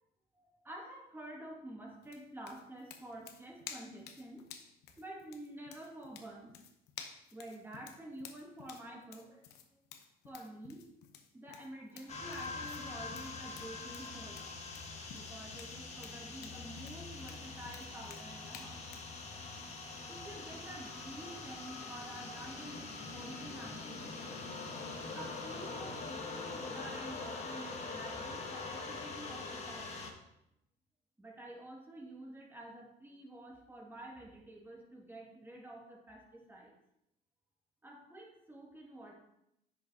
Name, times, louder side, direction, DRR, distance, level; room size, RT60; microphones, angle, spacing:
voice 1, 0.3-4.5 5.0-6.6 7.3-9.8 10.2-10.8 11.3-14.6 15.1-18.8 20.1-24.3 25.1-30.2 31.2-36.7 37.8-39.1, right 1 dB, 15° right, -2 dB, 2.1 m, -49 dB
sound 1, 2.0-19.1, left 8 dB, 85° left, 0.8 m, -53 dB
sound 2, 12.1-30.1, left 3 dB, 40° left, 1.5 m, -44 dB
9.9 x 6.3 x 2.8 m, 0.81 s
cardioid pair, 110°, 17 cm